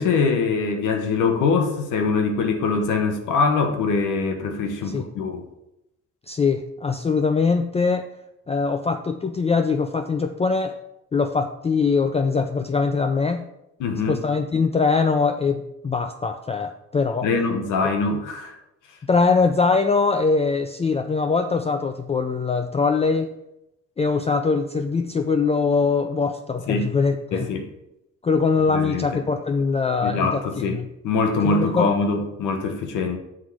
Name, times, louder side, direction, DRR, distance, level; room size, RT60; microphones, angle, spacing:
voice 1, 0.0-5.5 13.8-14.2 17.2-18.6 26.7-26.9 27.3-27.7 28.7-29.1 30.0-30.8 31.0-33.2, left 4 dB, 90° left, 5 dB, 1.2 m, -23 dB
voice 2, 6.3-8.1 8.5-10.8 11.1-13.5 14.1-17.3 19.1-23.3 24.0-27.5 28.2-30.9 31.4-31.9, left 4 dB, 20° left, 8 dB, 0.4 m, -22 dB
6.4 x 4.8 x 6.1 m, 0.87 s
cardioid pair, 90°, 30 cm